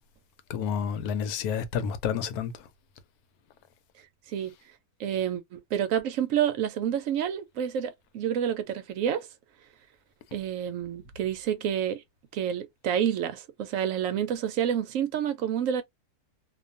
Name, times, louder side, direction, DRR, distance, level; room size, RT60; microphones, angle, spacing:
voice 1, 0.5-2.5, left 7 dB, 90° left, 1.1 m, -29 dB
voice 2, 5.0-9.3 10.3-12.0 12.3-15.8, right 9 dB, 70° right, 0.9 m, -29 dB
2.5 x 2.3 x 2.5 m
omnidirectional pair, 1.6 m